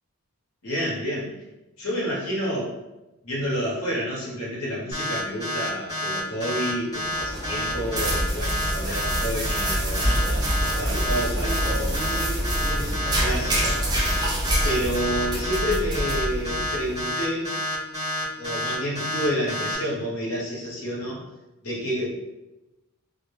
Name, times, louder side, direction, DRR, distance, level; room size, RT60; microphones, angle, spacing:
voice 1, 0.6-1.3 1.8-2.8 3.2-12.2 12.7-13.8 14.6-17.5 18.4-21.2 21.6-22.2, equal, 75° left, -5 dB, 1.0 m, -29 dB
sound 1, 4.9-19.7, left 1 dB, 15° left, 0.8 m, -29 dB
sound 2, 7.0-17.0, right 1 dB, 20° right, 0.4 m, -26 dB
2.2 x 2.1 x 3.0 m, 1.0 s
head